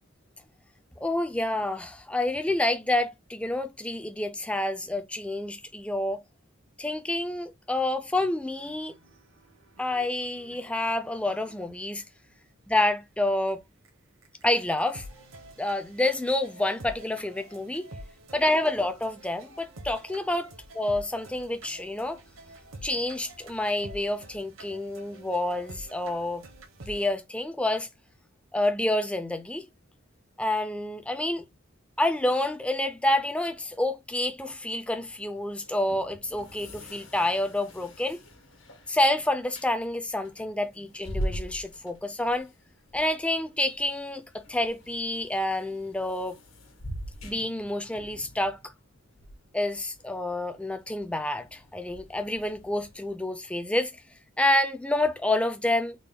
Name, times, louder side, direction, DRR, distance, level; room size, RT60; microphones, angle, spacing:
voice 1, 1.0-6.2 6.8-9.0 9.8-12.0 12.7-13.6 14.4-15.1 15.6-17.9 18.3-20.5 20.8-22.2 22.8-26.4 26.9-27.9 28.5-29.7 30.4-31.4 32.0-38.2 38.9-42.5 42.9-46.4 47.2-48.7 49.5-53.9 54.4-56.0, left 1 dB, 5° left, 0.3 m, -28 dB
sound 1, 8.5-12.0 12.7-12.8 13.5-13.6 13.8-13.9 14.2-27.1, right 1 dB, 80° right, 0.9 m, -48 dB
sound 2, 34.8-53.1, equal, 75° left, 1.3 m, -43 dB
3.8 x 2.2 x 3.4 m
head